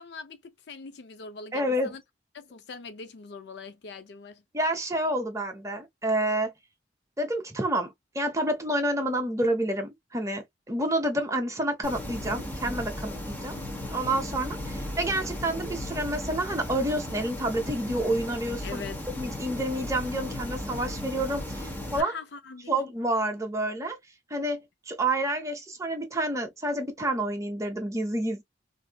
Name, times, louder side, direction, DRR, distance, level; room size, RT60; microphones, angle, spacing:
voice 1, 0.0-2.0 2.3-4.4 18.6-19.0 22.0-22.7, left 4 dB, 65° left, 0.5 m, -42 dB
voice 2, 1.5-1.9 4.5-6.5 7.2-13.6 13.9-18.8 19.2-22.1 22.7-24.0 24.3-28.4, right 1 dB, 15° right, 0.8 m, -29 dB
sound 1, 11.8-22.0, left 1 dB, 10° left, 0.9 m, -36 dB
4.1 x 2.6 x 2.2 m
head